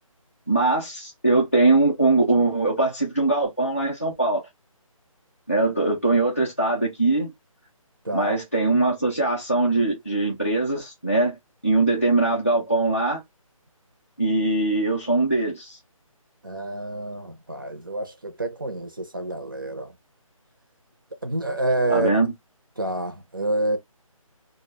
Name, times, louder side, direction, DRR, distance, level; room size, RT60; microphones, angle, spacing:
voice 1, 0.5-4.4 5.5-7.3 8.1-11.4 11.6-13.2 14.2-15.8 21.9-22.3, right 2 dB, 25° left, 0.3 m, -21 dB
voice 2, 8.1-8.4 16.4-19.9 21.2-22.2 22.8-23.8, right 2 dB, 40° right, 0.4 m, -28 dB
2.0 x 2.0 x 2.9 m
hypercardioid pair, 175°, 18 cm